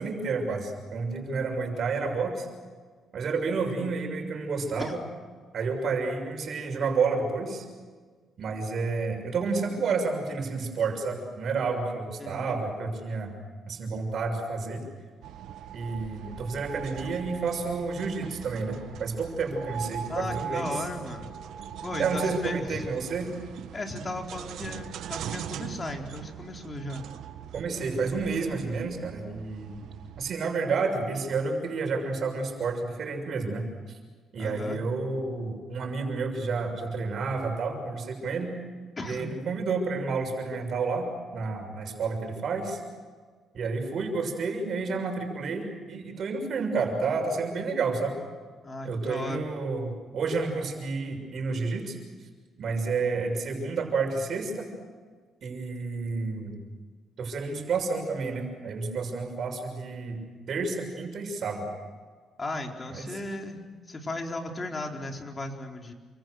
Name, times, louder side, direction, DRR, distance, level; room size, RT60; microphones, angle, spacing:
voice 1, 0.0-2.5 3.1-5.0 5.5-7.6 8.4-13.3 13.7-14.8 15.7-20.7 22.0-23.3 27.5-29.8 30.2-33.7 34.3-38.5 39.0-42.8 43.5-48.2 48.8-52.0 52.6-54.7 55.4-56.6 57.2-60.2 60.5-61.7 62.9-63.2, right 4 dB, 60° right, 4 dB, 6.7 m, -30 dB
voice 2, 12.2-12.6 20.1-21.3 21.8-22.9 23.7-27.0 34.4-34.8 39.0-39.3 48.6-49.4 62.4-63.6 63.9-65.9, left 2 dB, 30° left, 2 dB, 4.2 m, -36 dB
sound 1, 15.2-30.3, right 8 dB, 80° right, 1.4 m, -40 dB
29.0 x 25.0 x 6.6 m, 1.5 s
cardioid pair, 90°, 0 cm